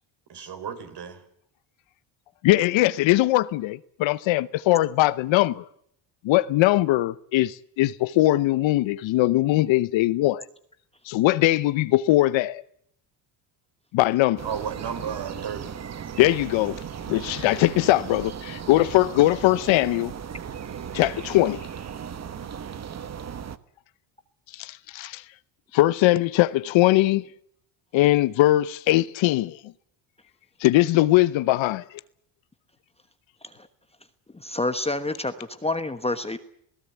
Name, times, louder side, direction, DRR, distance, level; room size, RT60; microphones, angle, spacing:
voice 1, 0.3-1.2 14.4-15.8, right 7 dB, 55° right, 4.5 m, -33 dB
voice 2, 2.4-5.6 6.2-10.4 11.1-12.6 13.9-14.4 16.2-16.8 17.1-20.1 20.9-21.6 24.5-25.2 25.7-27.2 27.9-29.6 30.6-31.8, left 16 dB, 65° left, 0.9 m, -21 dB
sound 1, 14.4-23.6, right 8 dB, 30° right, 1.1 m, -37 dB
voice 3, 34.3-36.4, left 2 dB, 10° left, 1.1 m, -28 dB
27.0 x 17.0 x 8.2 m
supercardioid pair, 95°, 50 cm